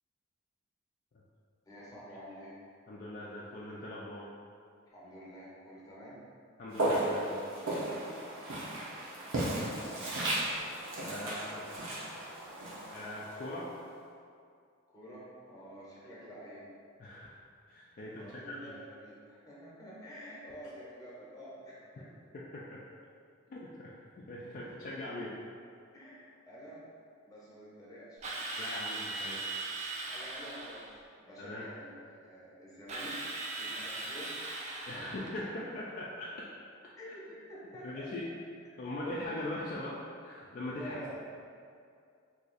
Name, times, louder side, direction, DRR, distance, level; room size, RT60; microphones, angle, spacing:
voice 1, 1.7-2.5 4.9-6.2 9.5-10.0 11.2-12.0 14.9-16.6 18.1-22.0 25.9-26.8 27.2-28.4 30.1-33.1 33.5-34.3 34.6-34.8 35.0-35.1 37.0-38.1 38.8-39.3 39.7-39.8 40.8-41.2, equal, 15° left, -7 dB, 0.7 m, -49 dB
voice 2, 2.9-4.3 6.6-7.4 11.0-11.6 12.9-13.7 17.0-17.4 17.7-18.8 22.3-22.8 23.5-25.4 28.6-29.4 31.4-31.6 34.9-36.3 37.8-38.3 38.8-39.9 40.2-41.2, left 1 dB, 45° left, -6 dB, 0.3 m, -41 dB
Walk footsteps, 6.7-13.8, right 1 dB, 75° right, 0.8 m, -35 dB
Drill, 28.2-30.9 32.9-35.4, right 2 dB, 35° right, 0.3 m, -39 dB
2.7 x 2.5 x 3.9 m, 2.3 s
head